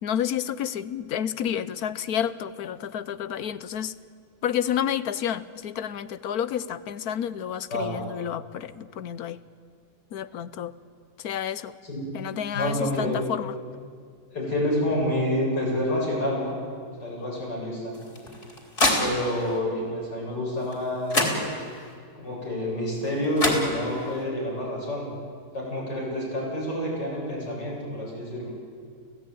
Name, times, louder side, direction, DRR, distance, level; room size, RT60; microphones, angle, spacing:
voice 1, 0.0-3.9 4.4-9.4 10.1-10.7 11.2-11.7 12.1-13.5, left 9 dB, 65° left, 15 dB, 1.2 m, -30 dB
voice 2, 12.5-13.2 14.3-16.6 17.0-17.9 19.0-21.2 22.1-25.1 25.5-28.5, left 1 dB, 85° left, -3 dB, 8.7 m, -28 dB
sound 1, 17.9-19.6 20.7-20.8 21.1-21.9 23.1-23.2 23.4-24.2, left 1 dB, 45° left, 4.1 m, -27 dB
29.5 x 16.5 x 9.3 m, 2.1 s
omnidirectional pair, 1.8 m